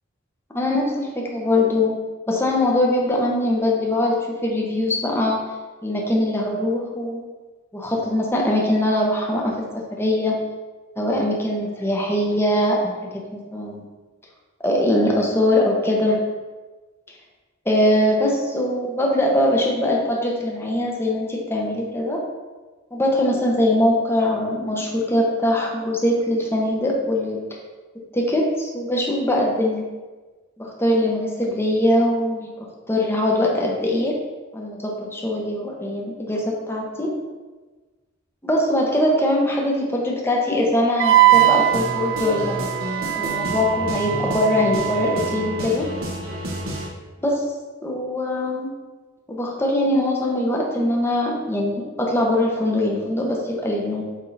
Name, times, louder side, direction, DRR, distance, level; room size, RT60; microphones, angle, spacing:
voice 1, 0.5-2.0 2.3-5.4 5.8-7.2 7.7-10.4 11.0-13.8 14.6-16.2 17.6-22.2 22.9-27.4 28.1-29.8 30.6-34.2 34.5-37.1 38.4-42.6 43.1-45.9 47.2-47.4 47.8-48.7 49.3-54.0, left 1 dB, 10° left, -1 dB, 1.1 m, -22 dB
Wind instrument woodwind instrument, 41.0-45.6, right 15 dB, 60° right, 0.3 m, -21 dB
sound 1, 41.3-46.9, equal, 90° right, 1.3 m, -30 dB
8.3 x 3.6 x 4.2 m, 1.3 s
head